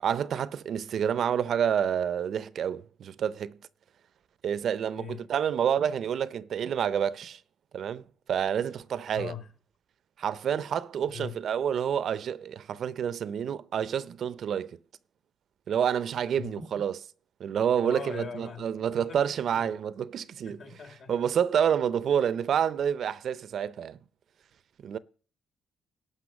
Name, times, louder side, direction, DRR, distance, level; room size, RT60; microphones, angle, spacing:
voice 1, 0.0-3.6 4.4-7.4 7.7-9.3 10.2-14.8 15.7-16.9 17.4-20.6 21.1-24.0 24.8-25.0, right 8 dB, 65° right, 0.6 m, -28 dB
voice 2, 4.9-5.3 9.1-9.5 11.1-11.4 16.4-16.5 17.8-19.7 20.4-21.1, left 6 dB, 65° left, 3.3 m, -41 dB
12.0 x 5.6 x 7.1 m
cardioid pair, 90°, 0 cm